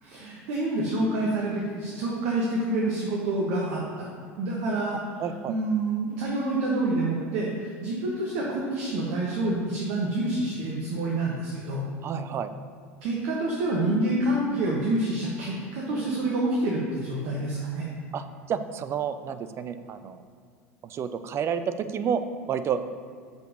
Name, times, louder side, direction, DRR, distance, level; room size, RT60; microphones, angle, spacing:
voice 1, 0.0-4.1 4.4-5.0 5.5-11.8 13.0-17.8, right 2 dB, 55° right, -3 dB, 1.5 m, -27 dB
voice 2, 5.2-5.5 12.0-12.5 18.1-20.2 20.8-22.9, right 7 dB, 35° right, 10 dB, 0.5 m, -30 dB
6.5 x 5.3 x 6.7 m, 2.1 s
figure-of-eight pair, 75°, 8 cm